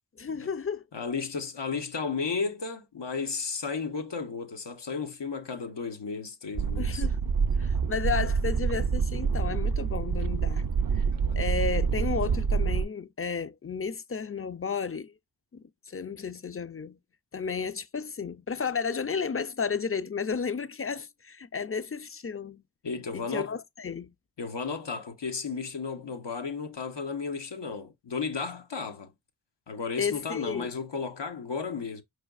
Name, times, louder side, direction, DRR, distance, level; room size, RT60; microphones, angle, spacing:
voice 1, 0.2-0.8 6.8-7.2 7.6-10.6 11.4-15.1 15.5-17.0 17.3-22.6 23.1-24.1 30.0-30.7, left 5 dB, 35° left, 0.4 m, -33 dB
voice 2, 0.9-7.0 11.1-11.4 22.8-23.6 24.4-29.1 29.7-32.0, left 5 dB, 85° left, 0.8 m, -34 dB
sound 1, 6.5-12.8, right 6 dB, 55° right, 0.4 m, -27 dB
4.6 x 3.2 x 2.3 m
wide cardioid pair, 50°, 42 cm